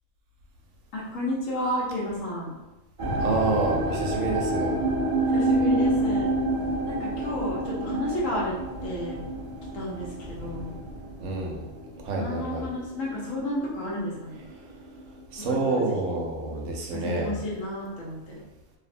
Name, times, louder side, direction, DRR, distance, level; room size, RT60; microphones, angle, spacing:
voice 1, 0.9-2.5 5.3-6.3 6.9-8.6 8.8-9.2 9.7-10.8 12.1-14.4 15.4-16.2 16.9-18.4, left 1 dB, 80° left, -3 dB, 1.1 m, -32 dB
sound 1, 3.0-14.2 14.4-15.1 15.6-15.7, right 1 dB, 30° right, 0.7 m, -28 dB
voice 2, 3.2-4.8 11.2-11.7 12.0-12.7 15.3-17.4, right 3 dB, 80° right, 0 dB, 0.9 m, -28 dB
2.7 x 2.0 x 2.5 m, 1.0 s
omnidirectional pair, 1.3 m